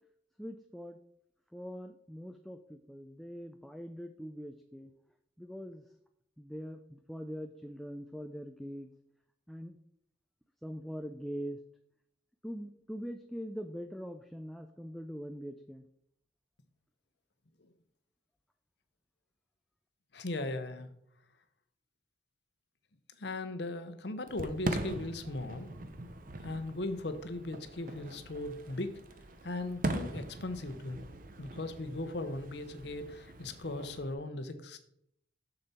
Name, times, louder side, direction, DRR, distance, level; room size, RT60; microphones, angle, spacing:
voice 1, 0.4-1.0 1.5-4.9 5.4-5.8 6.4-8.9 9.5-9.8 10.6-11.6 12.4-15.8, equal, ahead, 6 dB, 0.3 m, -42 dB
voice 2, 20.1-20.9 23.2-25.7 26.4-29.0 29.4-31.0 31.4-34.8, left 2 dB, 65° left, 9 dB, 0.9 m, -38 dB
Fireworks, 24.3-34.1, right 2 dB, 45° right, 0.7 m, -41 dB
6.9 x 6.8 x 4.3 m, 0.74 s
head